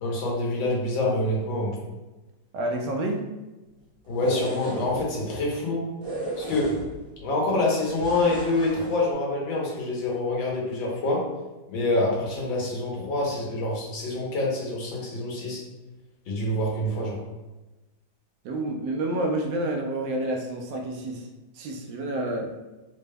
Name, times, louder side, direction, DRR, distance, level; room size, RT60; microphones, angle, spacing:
voice 1, 0.0-1.8 4.1-5.9 6.4-6.8 7.2-11.3 11.7-15.6 16.3-17.2, left 2 dB, 85° left, -3 dB, 1.7 m, -26 dB
voice 2, 2.5-3.2 18.4-21.3 21.5-22.5, right 1 dB, 75° right, 1 dB, 1.1 m, -29 dB
sound 1, 4.0-5.0 6.0-7.1 8.0-9.0, right 1 dB, 20° right, 1.1 m, -35 dB
4.0 x 2.1 x 3.4 m, 1.1 s
omnidirectional pair, 2.0 m